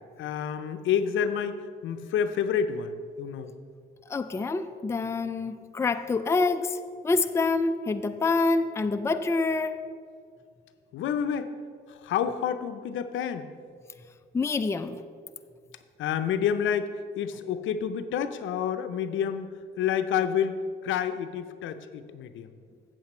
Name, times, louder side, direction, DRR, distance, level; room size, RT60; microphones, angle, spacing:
voice 1, 0.2-3.5 10.9-11.5 11.9-13.5 16.0-22.5, left 8 dB, 75° left, 10 dB, 0.6 m, -29 dB
voice 2, 4.1-9.8 14.3-15.0, left 3 dB, 15° left, 8 dB, 0.4 m, -26 dB
8.0 x 7.8 x 4.3 m, 2.1 s
cardioid pair, 90°, 20 cm